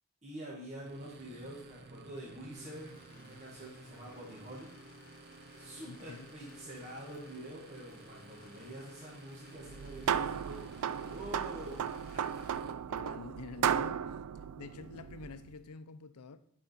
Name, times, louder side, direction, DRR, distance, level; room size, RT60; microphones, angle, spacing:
voice 1, 0.2-4.7 5.5-12.4, right 1 dB, 30° right, 1.8 m, -47 dB
sound 1, 0.8-12.7, right 2 dB, 45° right, 0.7 m, -54 dB
Rain, 2.5-12.5, left 3 dB, 40° left, 1.5 m, -61 dB
voice 2, 5.9-6.3 12.9-14.0 14.6-16.4, left 4 dB, 90° left, 0.5 m, -47 dB
sound 2, 9.6-15.5, right 8 dB, 80° right, 0.3 m, -35 dB
11.5 x 4.9 x 4.3 m
head